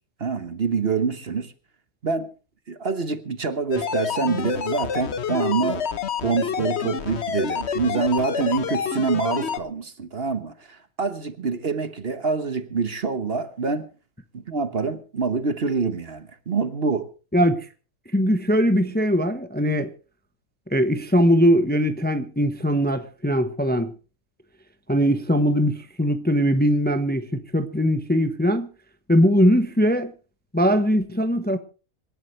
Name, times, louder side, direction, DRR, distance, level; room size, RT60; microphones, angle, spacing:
voice 1, 0.2-1.5 2.0-2.3 2.7-5.8 6.2-13.9 14.3-17.1, right 4 dB, 45° right, 1.3 m, -26 dB
sound 1, 3.7-9.6, left 7 dB, 50° left, 1.2 m, -28 dB
voice 2, 17.3-17.6 18.1-19.9 20.7-23.9 24.9-25.7 26.0-27.3 27.5-28.7 29.1-30.1 30.5-31.6, equal, 10° left, 0.9 m, -20 dB
26.0 x 12.0 x 3.2 m
omnidirectional pair, 1.5 m